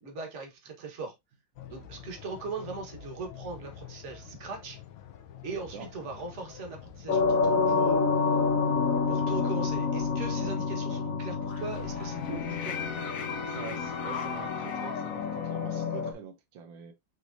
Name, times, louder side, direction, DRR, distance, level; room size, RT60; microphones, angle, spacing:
voice 1, 0.0-1.1 1.7-4.8 5.4-8.0 9.1-12.8, right 4 dB, 40° right, 1.6 m, -40 dB
sound 1, 1.6-10.6, left 8 dB, 75° left, 1.3 m, -48 dB
sound 2, 7.1-16.1, left 4 dB, 55° left, 1.1 m, -28 dB
voice 2, 13.4-16.9, right 7 dB, 80° right, 1.5 m, -44 dB
6.1 x 3.2 x 2.6 m
omnidirectional pair, 2.0 m